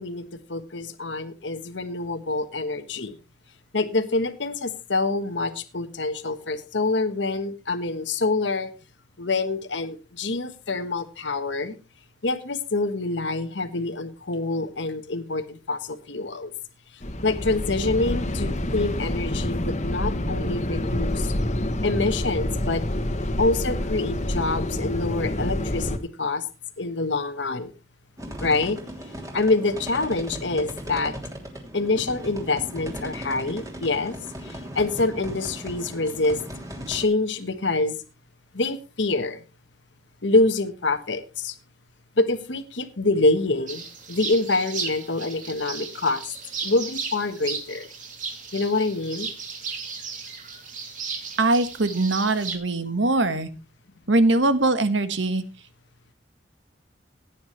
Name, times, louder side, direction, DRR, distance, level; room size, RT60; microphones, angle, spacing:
voice 1, 0.0-3.2 3.7-8.7 9.2-11.7 12.2-16.5 17.2-21.3 21.8-22.8 23.4-26.4 26.8-27.7 28.4-28.8 29.3-31.1 31.7-34.1 34.4-36.4 36.9-38.0 38.5-39.4 40.2-41.5 42.2-46.3 46.6-47.9 48.5-49.3, left 3 dB, 75° left, 1.4 m, -26 dB
sound 1, 17.0-26.0, left 1 dB, 40° left, 1.5 m, -27 dB
sound 2, 28.2-37.0, equal, 20° right, 3.2 m, -37 dB
sound 3, 43.7-52.6, right 5 dB, 45° right, 3.0 m, -35 dB
voice 2, 51.4-53.5 54.1-55.4, right 2 dB, 85° right, 1.6 m, -22 dB
17.0 x 9.4 x 3.2 m
head